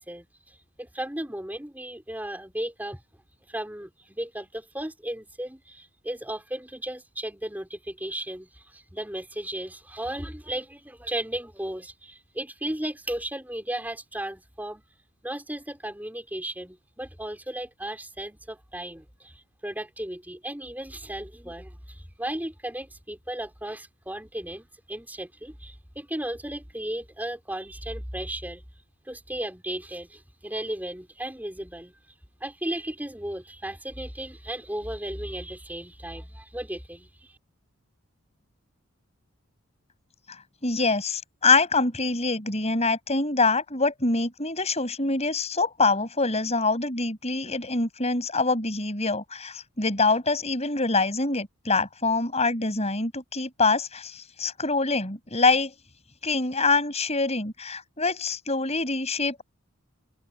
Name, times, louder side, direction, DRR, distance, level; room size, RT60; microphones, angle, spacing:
voice 1, 0.0-3.0 3.5-14.8 15.2-28.6 29.1-31.9 32.4-37.4, right 1 dB, 10° right, 4.4 m, -35 dB
voice 2, 40.6-55.7 56.2-59.4, left 3 dB, 30° left, 7.4 m, -25 dB
open air
head